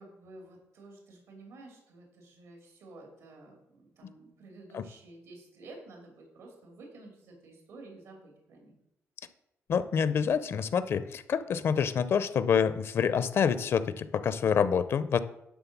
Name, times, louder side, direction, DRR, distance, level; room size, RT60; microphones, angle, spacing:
voice 1, 0.0-8.8, right 2 dB, 90° right, 1 dB, 2.6 m, -51 dB
voice 2, 9.7-15.2, left 7 dB, 55° left, 14 dB, 0.5 m, -27 dB
11.0 x 3.7 x 7.3 m, 0.81 s
wide cardioid pair, 155°, 5 cm